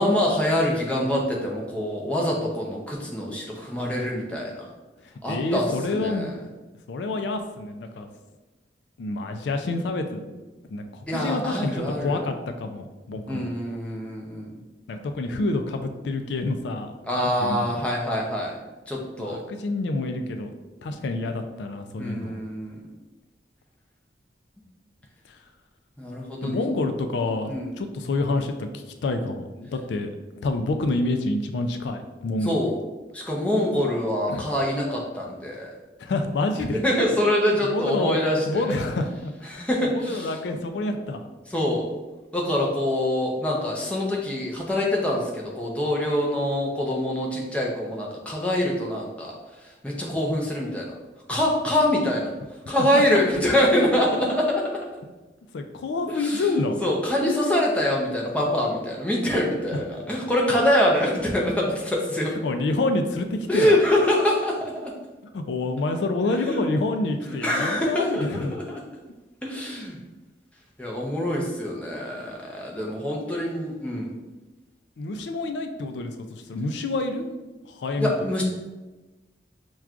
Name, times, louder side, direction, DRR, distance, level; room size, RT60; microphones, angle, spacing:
voice 1, 0.0-4.7 5.2-6.3 11.1-12.2 13.3-14.5 17.1-18.6 18.9-19.4 22.0-22.8 26.0-26.6 27.5-27.7 32.4-32.8 33.1-35.7 36.7-38.7 39.5-40.3 41.5-41.9 42.3-49.4 49.8-50.9 51.3-52.3 52.7-54.8 56.1-62.3 63.5-64.9 66.4-66.6 67.4-68.8 69.4-70.0 70.8-74.1 78.0-78.4, left 1 dB, 5° left, -3 dB, 0.5 m, -25 dB
voice 2, 5.3-6.3 6.9-8.1 9.0-10.4 10.7-13.5 14.9-18.0 19.2-20.5 20.8-22.3 25.3-25.4 26.4-30.1 30.4-32.6 34.3-34.5 36.0-36.8 37.6-38.2 38.5-41.3 52.8-53.0 55.5-56.8 62.4-63.8 65.3-68.6 73.3-73.4 75.0-77.3 77.7-78.1, left 2 dB, 85° left, 6 dB, 0.4 m, -28 dB
5.8 x 2.3 x 2.4 m, 1.2 s
head